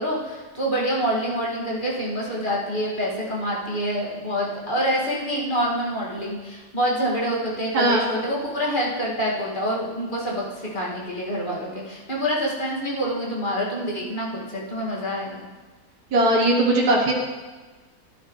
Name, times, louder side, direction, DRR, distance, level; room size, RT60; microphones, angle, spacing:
voice 1, 0.0-15.5, equal, 30° left, -5 dB, 2.3 m, -26 dB
voice 2, 7.7-8.0 16.1-17.1, right 1 dB, 80° right, -2 dB, 1.8 m, -19 dB
14.0 x 10.5 x 3.2 m, 1.3 s
omnidirectional pair, 1.6 m